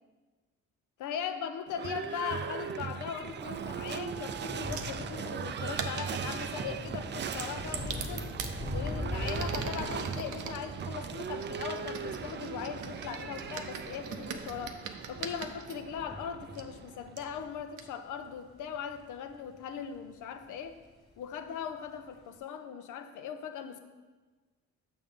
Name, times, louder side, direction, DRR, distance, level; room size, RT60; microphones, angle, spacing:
voice 1, 1.0-8.3 8.7-14.8 15.1-20.7 21.2-23.8, left 7 dB, 80° left, 8 dB, 0.7 m, -39 dB
Livestock farm animals working animals / Bell, 1.7-17.5, right 7 dB, 40° right, 0.4 m, -39 dB
Thunder / Rain, 4.0-20.1 20.4-20.9 21.1-21.3, left 1 dB, 15° left, 1.5 m, -43 dB
sound 1, 4.7-5.0 5.6-6.5 7.2-8.5 9.1-10.6 11.4-15.7 16.5-16.6 17.2-17.3 17.8-17.9, right 7 dB, 75° right, 0.7 m, -41 dB
7.0 x 6.9 x 3.7 m, 1.3 s
cardioid pair, 90°, 30 cm